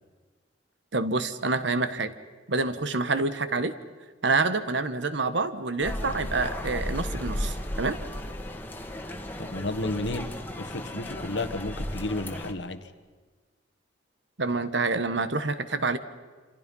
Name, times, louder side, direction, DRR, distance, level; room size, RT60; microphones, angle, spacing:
voice 1, 0.9-2.1 2.5-3.7 4.2-8.0 14.4-16.0, right 3 dB, 70° right, 11 dB, 1.3 m, -27 dB
sound 1, 5.8-12.5, left 1 dB, 10° left, 1.8 m, -34 dB
voice 2, 9.4-12.9, left 2 dB, 70° left, 10 dB, 1.5 m, -32 dB
27.5 x 26.5 x 5.5 m, 1.4 s
head